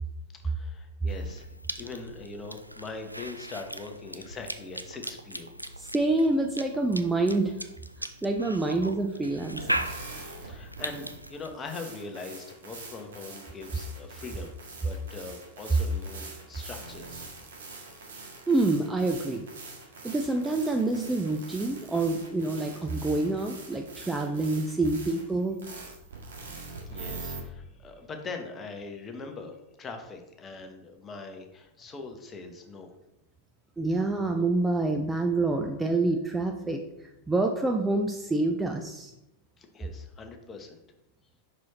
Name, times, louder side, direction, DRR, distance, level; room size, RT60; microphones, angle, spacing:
voice 1, 0.3-5.7 10.4-14.5 14.8-17.3 26.9-32.9 39.6-40.8, left 4 dB, 20° left, 4 dB, 1.0 m, -42 dB
Cough / Chewing mastication, 1.1-11.5, right 1 dB, 90° right, 0.4 m, -38 dB
voice 2, 5.8-7.5 8.2-9.8 18.5-19.5 20.0-25.6 33.8-36.8 37.3-39.1, right 2 dB, 10° right, 3 dB, 0.5 m, -27 dB
sound 1, 9.5-27.4, right 3 dB, 65° right, 1.8 m, -44 dB
5.5 x 4.7 x 4.2 m, 0.89 s
figure-of-eight pair, 90°, 0 cm